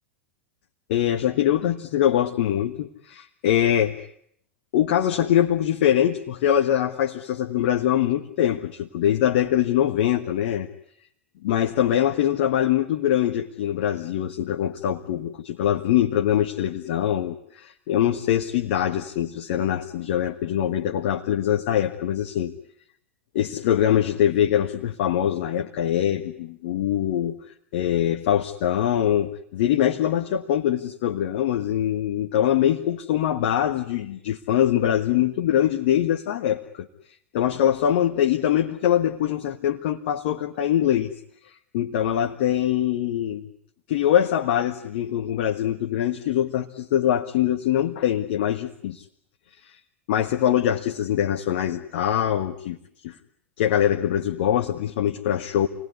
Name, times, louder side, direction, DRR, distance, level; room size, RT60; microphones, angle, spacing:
voice 1, 0.9-4.1 4.7-10.7 11.4-22.5 23.3-27.4 27.7-36.9 37.3-41.1 41.7-43.5 43.9-49.0 50.1-52.8 53.0-53.1 53.6-55.7, left 11 dB, 60° left, 3 dB, 1.6 m, -23 dB
28.0 x 20.5 x 9.7 m, 0.69 s
figure-of-eight pair, 85°, 7 cm